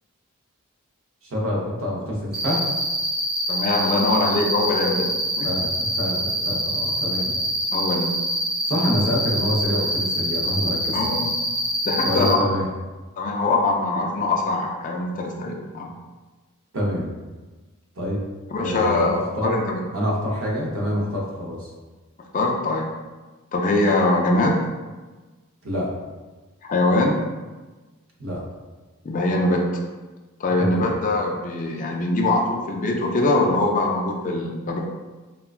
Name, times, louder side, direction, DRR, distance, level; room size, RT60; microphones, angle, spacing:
voice 1, 1.2-2.6 5.4-7.4 8.7-11.0 12.0-12.7 16.7-17.1 18.0-18.2 18.6-19.6 19.9-21.7 25.6-25.9 28.2-28.4 30.6-30.9, equal, 70° right, -3 dB, 0.8 m, -26 dB
Cricket, 2.3-12.3, equal, 25° right, 0.5 m, -25 dB
voice 2, 3.5-5.1 5.4-5.5 7.7-8.2 10.9-11.3 11.8-12.6 13.2-15.9 18.5-19.8 22.3-22.9 23.5-24.6 26.6-27.2 29.0-29.7 30.4-34.8, left 2 dB, 35° left, 0 dB, 0.4 m, -22 dB
3.6 x 2.2 x 2.3 m, 1.2 s
head